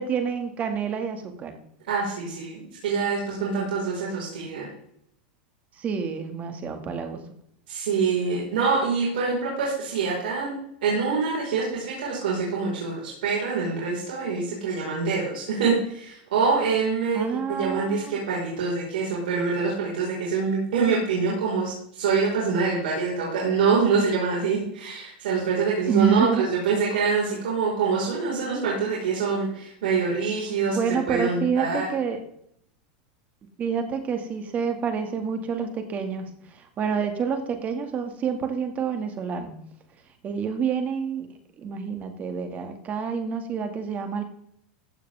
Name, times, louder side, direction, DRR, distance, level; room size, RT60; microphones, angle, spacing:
voice 1, 0.0-1.6 5.8-7.2 17.1-18.2 25.9-26.5 30.7-32.2 33.6-39.5 40.2-44.2, right 6 dB, 30° right, 6 dB, 2.3 m, -28 dB
voice 2, 1.9-4.7 7.7-10.5 10.8-31.9, right 5 dB, 80° right, -5 dB, 5.2 m, -25 dB
15.5 x 8.4 x 3.7 m, 0.72 s
supercardioid pair, 125°, 5 cm